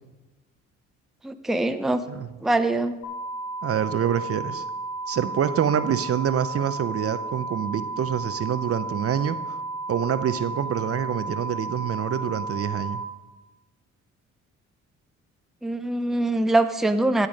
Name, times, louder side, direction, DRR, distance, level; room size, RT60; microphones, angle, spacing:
voice 1, 1.2-2.0 2.4-2.9 15.6-17.3, right 2 dB, ahead, 8 dB, 0.6 m, -23 dB
sound 1, 3.0-13.0, right 3 dB, 75° left, 1.9 m, -33 dB
voice 2, 3.6-4.6 5.1-9.6 9.9-13.0, right 9 dB, 50° right, 12 dB, 0.7 m, -26 dB
12.0 x 8.2 x 5.3 m, 1.1 s
cardioid pair, 90°, 30 cm